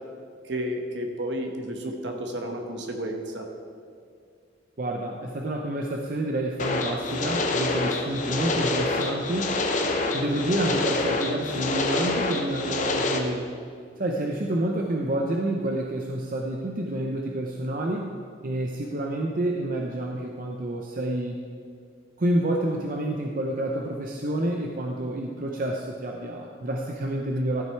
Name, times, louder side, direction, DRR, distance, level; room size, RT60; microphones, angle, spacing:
voice 1, 0.4-3.5, equal, 70° right, 3 dB, 1.2 m, -32 dB
voice 2, 4.8-9.6 10.1-13.5 14.0-18.1 18.4-21.4 22.2-27.6, right 1 dB, 50° right, 1 dB, 0.7 m, -28 dB
sound 1, 6.6-13.2, left 2 dB, 45° left, 0.8 m, -27 dB
13.0 x 6.1 x 4.5 m, 2.3 s
head